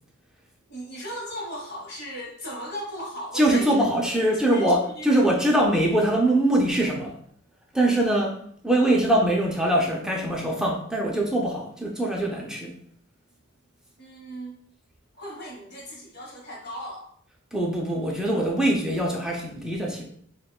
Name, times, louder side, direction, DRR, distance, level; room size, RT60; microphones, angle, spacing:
voice 1, 0.7-5.1 14.0-14.5 15.1-17.1, equal, 50° left, -2 dB, 1.3 m, -37 dB
voice 2, 3.3-7.1 7.7-12.8 17.5-20.0, right 1 dB, 5° right, -1 dB, 0.4 m, -23 dB
6.4 x 2.2 x 2.3 m, 0.62 s
head